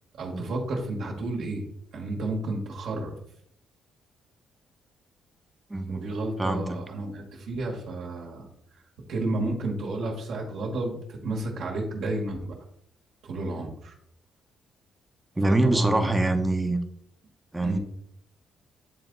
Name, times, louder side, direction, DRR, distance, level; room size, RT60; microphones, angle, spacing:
voice 1, 0.2-1.7 1.9-3.1 5.9-8.5 9.1-12.6 13.2-13.9 15.4-16.1 17.6-17.8, right 2 dB, 75° right, -1 dB, 1.6 m, -31 dB
voice 2, 5.7-6.1 6.4-6.8 15.4-16.8 17.5-17.8, right 2 dB, 15° right, 7 dB, 0.9 m, -24 dB
9.3 x 3.4 x 3.9 m, 0.70 s
cardioid pair, 90°, 0 cm